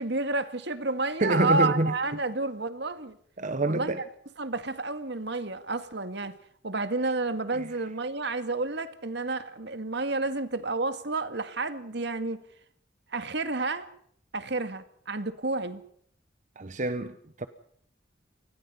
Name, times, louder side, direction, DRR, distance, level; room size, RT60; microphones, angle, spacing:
voice 1, 0.0-3.2 3.6-4.0 4.4-6.3 6.6-12.4 13.1-13.9 14.3-15.8, right 3 dB, 65° right, 2.0 m, -30 dB
voice 2, 1.2-2.2 3.4-4.0 7.5-7.7 16.6-17.5, right 2 dB, 45° right, 1.1 m, -27 dB
27.5 x 20.5 x 5.6 m
head